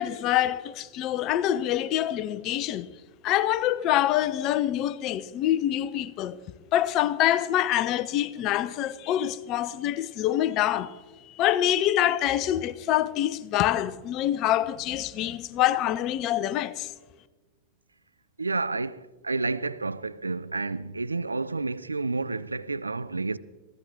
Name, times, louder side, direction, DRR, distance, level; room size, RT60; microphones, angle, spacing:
voice 1, 0.0-2.9 3.2-6.4 6.7-11.0 11.3-16.9, left 12 dB, 40° left, 0.6 m, -25 dB
voice 2, 18.4-23.4, right 3 dB, 80° right, 0.4 m, -30 dB
22.5 x 15.0 x 3.5 m
figure-of-eight pair, 90°, 0 cm